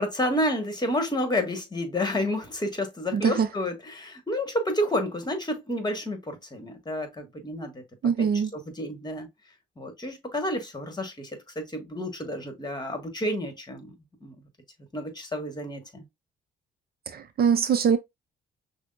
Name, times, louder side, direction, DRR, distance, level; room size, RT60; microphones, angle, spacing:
voice 1, 0.0-7.8 8.5-9.3 9.8-13.9 14.2-14.3 14.9-16.0, left 1 dB, 20° left, 1.4 m, -30 dB
voice 2, 3.1-3.5 8.0-8.5 17.1-18.0, right 7 dB, 50° right, 0.5 m, -23 dB
6.1 x 2.1 x 2.5 m
cardioid pair, 90°, 20 cm